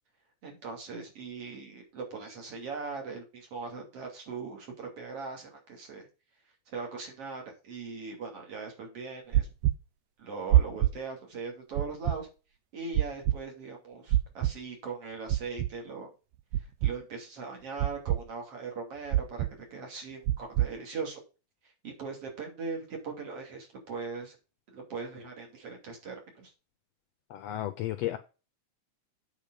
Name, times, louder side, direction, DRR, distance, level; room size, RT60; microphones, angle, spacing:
voice 1, 0.4-6.1 6.7-9.5 10.2-12.3 12.7-16.1 16.6-21.2 21.8-24.4 24.7-26.5, right 4 dB, 50° right, 3.6 m, -40 dB
sound 1, 9.3-9.7 10.5-10.9 11.8-12.2 12.9-13.3 14.1-14.5 15.3-15.7 16.5-16.9 17.8-18.2 19.1-19.5 20.3-20.7, right 13 dB, 85° right, 1.4 m, -24 dB
voice 2, 27.3-28.2, left 13 dB, 75° left, 1.5 m, -33 dB
8.8 x 5.3 x 5.1 m
omnidirectional pair, 3.5 m